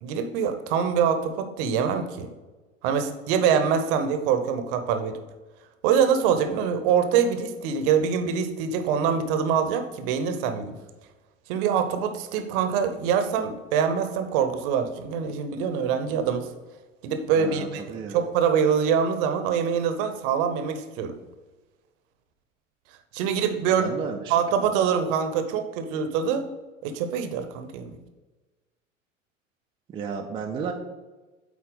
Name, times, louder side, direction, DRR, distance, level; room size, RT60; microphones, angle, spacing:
voice 1, 0.0-2.3 2.8-5.2 5.8-10.8 11.5-16.5 17.0-21.1 23.1-23.9 24.3-26.5 26.8-28.0, right 7 dB, 45° right, 8 dB, 0.8 m, -24 dB
voice 2, 17.3-18.2 23.7-24.7 29.9-30.7, right 5 dB, 15° right, 2 dB, 0.4 m, -33 dB
8.4 x 4.2 x 3.9 m, 1.2 s
figure-of-eight pair, 85°, 39 cm